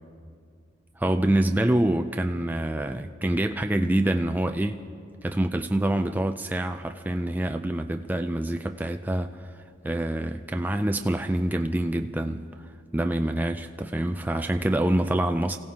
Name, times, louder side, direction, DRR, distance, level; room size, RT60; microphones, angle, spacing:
voice 1, 1.0-4.9 5.2-9.5 9.8-15.6, right 1 dB, 10° right, 6 dB, 0.3 m, -26 dB
28.0 x 16.5 x 2.9 m, 2.4 s
head